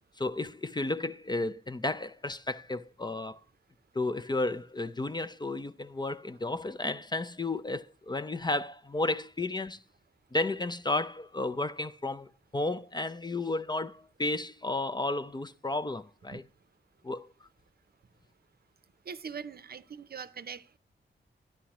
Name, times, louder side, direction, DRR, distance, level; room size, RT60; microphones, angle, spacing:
voice 1, 0.2-3.4 3.9-9.8 10.3-16.4 17.0-17.3, left 2 dB, 20° left, 0.4 m, -33 dB
voice 2, 19.1-20.8, right 6 dB, 50° right, 0.6 m, -42 dB
13.0 x 10.0 x 3.0 m
wide cardioid pair, 145°, 20 cm